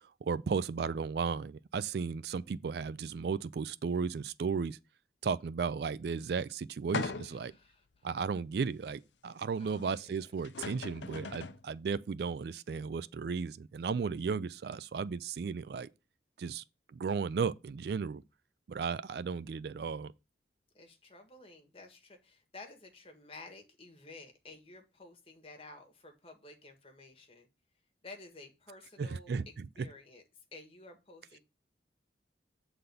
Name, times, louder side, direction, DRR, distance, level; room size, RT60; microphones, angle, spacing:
voice 1, 0.0-4.8 5.2-7.5 8.0-15.9 16.4-16.6 16.9-18.2 18.7-20.1 29.0-29.7, right 5 dB, 60° right, 0.3 m, -35 dB
sound 1, 6.9-7.6 8.2-8.3 10.1-10.2 10.4-11.6, left 4 dB, 75° left, 0.6 m, -38 dB
voice 2, 7.2-8.1 9.5-9.9 20.7-27.5 28.0-30.2 30.5-31.4, left 3 dB, 30° left, 1.6 m, -52 dB
8.0 x 3.9 x 6.8 m
head